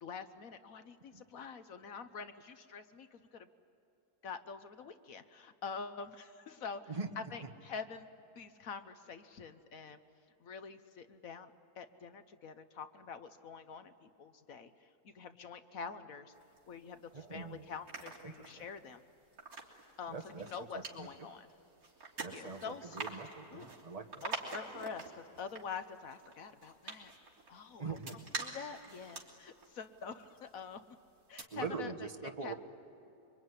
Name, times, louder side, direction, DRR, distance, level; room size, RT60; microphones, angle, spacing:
voice 1, 0.0-3.5 4.2-6.8 7.2-8.1 8.4-10.0 10.4-16.3 16.7-19.0 20.0-20.2 20.4-21.5 22.3-23.2 23.5-23.7 24.2-27.1 27.5-28.0 28.4-30.8 31.3-32.1 32.4-32.5, left 5 dB, 65° left, 10 dB, 1.3 m, -46 dB
sound 1, 16.4-17.2 17.6-30.8 31.2-31.4, right 3 dB, 70° right, 3.6 m, -47 dB
voice 2, 17.1-17.7 18.2-18.7 20.1-21.3 22.2-24.3 27.8-28.2 31.5-32.5, right 4 dB, 25° right, 4 dB, 1.4 m, -43 dB
25.5 x 24.0 x 9.7 m, 2.9 s
omnidirectional pair, 1.6 m